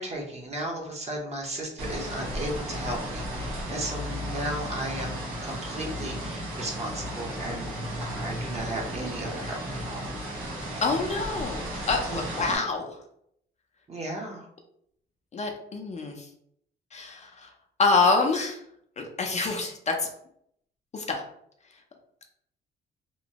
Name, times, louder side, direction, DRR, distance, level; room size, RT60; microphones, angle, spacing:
voice 1, 0.0-7.7 8.0-10.1 12.1-12.7 13.9-14.5, right 1 dB, 35° right, 0 dB, 0.8 m, -35 dB
sound 1, 1.8-12.6, equal, 80° right, 1.0 m, -34 dB
voice 2, 10.8-13.0 15.3-16.3 16.9-17.5 17.8-18.6 19.0-20.1 20.9-21.2, left 3 dB, 35° left, 2 dB, 0.5 m, -26 dB
2.9 x 2.1 x 2.8 m, 0.71 s
cardioid pair, 90°, 20 cm